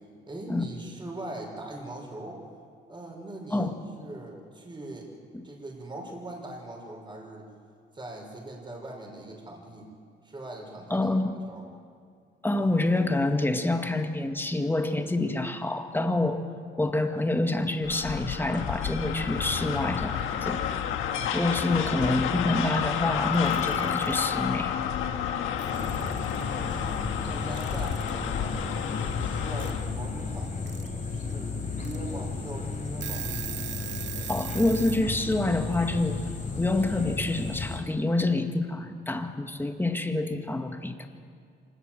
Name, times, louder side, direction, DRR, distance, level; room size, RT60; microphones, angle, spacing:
voice 1, 0.3-2.4 2.9-5.1 5.4-7.5 7.9-9.9 10.2-11.1 11.5-11.6 25.8-26.3 26.7-28.6 28.9-30.8 31.1-33.3, right 2 dB, 25° right, 0 dB, 6.0 m, -41 dB
voice 2, 10.9-11.4 12.4-16.4 16.8-20.6 21.3-24.7 34.3-36.2 36.6-41.1, left 2 dB, 10° left, 5 dB, 2.1 m, -27 dB
sound 1, 17.8-29.9, left 8 dB, 90° left, 1.7 m, -30 dB
Alarm / Clock, 23.3-24.1 25.3-25.4 25.6-26.4 27.5-28.2 29.6-29.7 30.4-30.9 31.3-31.4 31.8-32.0 32.5-32.6 32.9-35.0, right 12 dB, 65° right, 0.8 m, -39 dB
sound 2, 25.7-37.8, left 4 dB, 40° left, 4.2 m, -34 dB
25.5 x 20.0 x 7.9 m, 2.2 s
cardioid pair, 90°, 20 cm